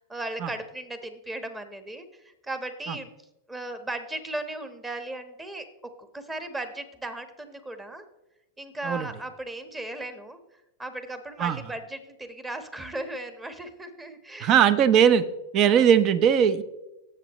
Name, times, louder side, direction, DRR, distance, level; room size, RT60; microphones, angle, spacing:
voice 1, 0.0-3.1 3.5-5.7 6.0-8.0 8.6-10.4 10.8-14.6 15.6-15.9, right 2 dB, 15° right, 9 dB, 1.4 m, -36 dB
voice 2, 14.4-15.2 15.5-16.6, right 8 dB, 40° right, 15 dB, 0.8 m, -19 dB
18.5 x 8.0 x 3.1 m, 0.94 s
hypercardioid pair, 105°, 0 cm